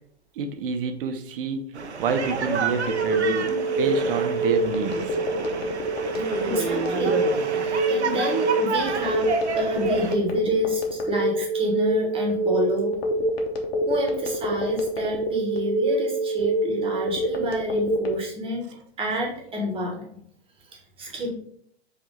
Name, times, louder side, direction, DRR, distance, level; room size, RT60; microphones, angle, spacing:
voice 1, 0.4-1.7 2.0-3.5 3.8-5.2, right 5 dB, 55° right, 7 dB, 0.8 m, -28 dB
sound 1, 1.7-10.1, right 5 dB, 90° right, 0.6 m, -30 dB
Telephone, 2.9-18.1, right 2 dB, 65° left, 1.0 m, -25 dB
voice 2, 6.4-12.9 13.9-18.6 19.0-20.0 21.0-21.3, equal, 15° right, -1 dB, 1.2 m, -28 dB
5.0 x 2.7 x 3.9 m, 0.65 s
figure-of-eight pair, 110°, 33 cm